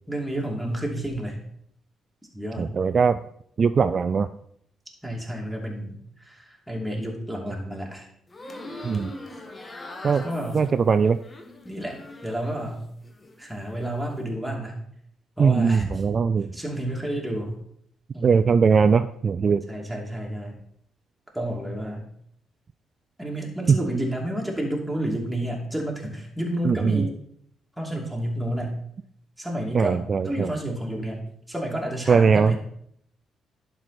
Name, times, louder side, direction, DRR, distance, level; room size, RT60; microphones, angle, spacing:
voice 1, 0.1-1.4 2.3-2.7 5.0-8.1 10.2-10.7 11.6-12.0 12.2-12.8 13.4-14.8 15.4-15.9 16.5-17.5 18.1-18.5 19.7-20.6 21.3-22.1 23.2-27.2 27.8-28.8 29.4-31.2 31.5-32.6, right 1 dB, 5° right, -2 dB, 2.8 m, -30 dB
voice 2, 2.6-3.2 3.6-4.3 8.8-9.1 10.0-10.2 10.5-11.2 15.4-16.5 18.2-19.6 23.7-23.8 26.6-27.1 29.7-30.5 32.1-32.6, right 5 dB, 45° right, 12 dB, 0.3 m, -20 dB
sound 1, 8.3-12.7 13.0-13.8, left 2 dB, 30° left, 1.3 m, -41 dB
11.0 x 4.8 x 4.2 m, 0.69 s
hypercardioid pair, 45°, 0 cm